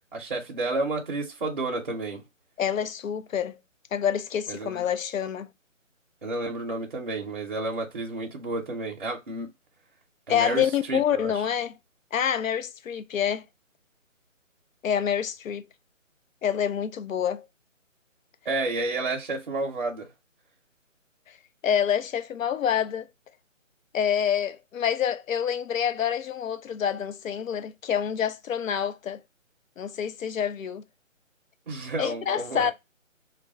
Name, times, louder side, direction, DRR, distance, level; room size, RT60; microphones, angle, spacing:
voice 1, 0.1-2.2 4.5-4.8 6.2-9.5 10.3-11.3 18.5-20.1 31.7-32.7, right 2 dB, 40° right, 0.6 m, -31 dB
voice 2, 2.6-3.6 3.9-5.5 10.3-11.8 12.1-13.5 14.8-15.7 16.4-17.5 21.6-23.1 23.9-29.2 29.8-30.8 32.0-32.7, left 8 dB, 80° left, 0.5 m, -27 dB
2.4 x 2.1 x 3.4 m
hypercardioid pair, 165°, 39 cm